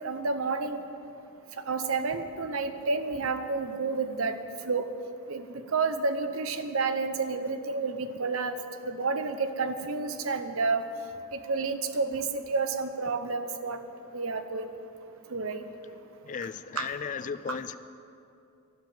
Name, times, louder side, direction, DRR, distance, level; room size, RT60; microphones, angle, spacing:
voice 1, 0.0-0.8 1.7-4.4 4.7-4.9 5.3-5.5 5.7-8.6 8.8-10.9 11.3-13.8 14.1-14.7 15.3-15.6 16.8-16.9 17.5-17.6, right 4 dB, 65° right, 9 dB, 0.8 m, -30 dB
voice 2, 16.2-17.7, left 6 dB, 35° left, 14 dB, 0.3 m, -35 dB
12.0 x 7.2 x 9.1 m, 2.7 s
head